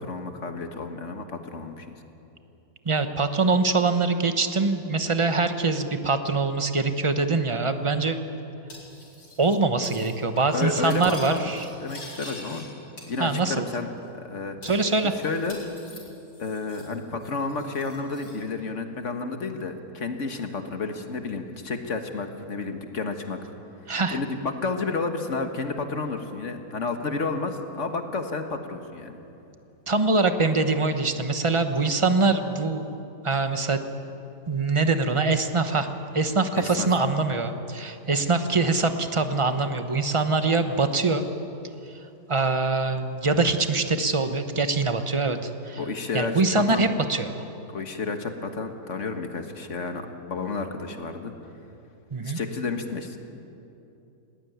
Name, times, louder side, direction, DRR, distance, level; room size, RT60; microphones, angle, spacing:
voice 1, 0.0-1.9 10.5-11.5 11.8-12.7 13.1-13.9 14.2-14.6 15.2-15.6 16.4-23.4 24.1-29.2 36.6-36.9 45.8-46.9 47.7-50.0 50.3-51.3 52.2-53.2, left 3 dB, 45° left, 6 dB, 1.7 m, -31 dB
voice 2, 2.8-8.2 9.4-11.7 13.2-13.7 14.6-15.1 23.9-24.2 29.9-32.9 33.2-33.8 34.5-35.9 36.1-41.2 42.3-45.8 46.1-47.4 52.1-52.4, right 3 dB, 25° right, 8 dB, 0.9 m, -23 dB
Cutlery silverware, 8.7-9.6 9.8-10.1 10.4-12.7 13.0-13.7 14.0-14.1 14.6-16.9 17.2-18.4, left 2 dB, 80° left, 5.5 m, -45 dB
20.0 x 18.5 x 9.4 m, 2.8 s
omnidirectional pair, 1.8 m